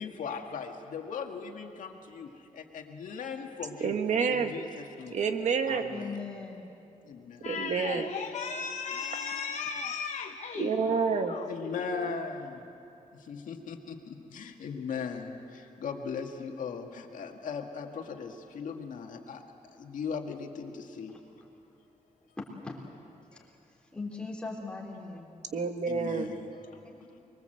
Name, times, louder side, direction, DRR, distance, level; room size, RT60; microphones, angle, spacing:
voice 1, 0.0-4.0 4.3-5.3 5.7-6.2 7.0-7.6 11.5-12.7 13.1-19.4 19.7-21.2 23.3-23.4 25.9-26.8, left 5 dB, 75° left, 2.0 m, -39 dB
voice 2, 3.8-4.5 5.1-5.9 7.4-8.0 10.5-11.3 25.5-26.3, right 5 dB, 60° right, 1.6 m, -28 dB
voice 3, 5.9-6.7 7.5-7.7 22.4-22.8 23.7-25.3 26.8-27.0, left 3 dB, 10° left, 3.3 m, -40 dB
voice 4, 7.4-11.7 12.0-12.1, left 6 dB, 55° left, 0.8 m, -36 dB
24.5 x 22.5 x 7.9 m
wide cardioid pair, 150°, 13 cm